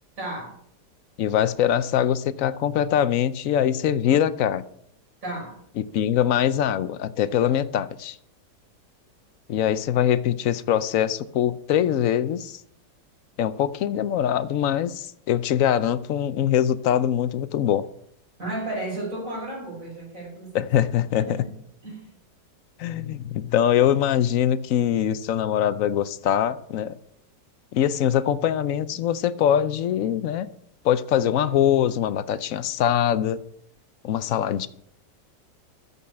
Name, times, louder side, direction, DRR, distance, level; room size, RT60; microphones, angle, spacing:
voice 1, 0.2-0.6 5.2-5.6 18.4-20.6 21.1-21.5 21.8-22.1, right 2 dB, 45° right, -3 dB, 5.8 m, -33 dB
voice 2, 1.2-4.6 5.9-8.2 9.5-12.6 13.4-17.8 20.5-21.4 22.8-26.9 27.7-30.5 30.8-33.4 34.0-34.7, left 10 dB, 65° left, 15 dB, 0.8 m, -23 dB
14.0 x 5.6 x 8.4 m, 0.70 s
omnidirectional pair, 1.9 m